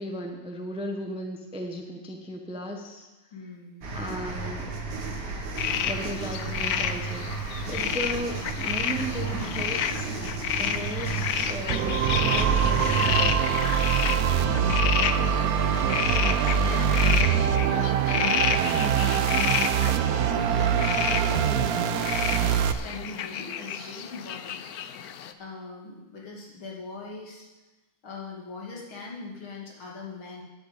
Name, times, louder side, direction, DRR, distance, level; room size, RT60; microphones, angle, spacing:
voice 1, 0.0-3.1 3.9-4.9 5.8-10.1 10.5-13.8, equal, 5° right, 2 dB, 0.7 m, -36 dB
voice 2, 3.3-3.9 4.2-4.4 7.8-8.1 14.4-15.9 16.6-19.5 19.9-22.1 22.4-24.6 25.4-27.5 28.0-30.4, left 3 dB, 70° left, -3 dB, 3.4 m, -40 dB
sound 1, 3.8-13.2, right 4 dB, 50° right, 2.1 m, -33 dB
sound 2, 5.6-25.3, left 8 dB, 85° left, 0.8 m, -31 dB
sound 3, 11.7-22.7, right 8 dB, 80° right, 0.8 m, -24 dB
10.5 x 8.1 x 8.3 m, 1.1 s
omnidirectional pair, 2.4 m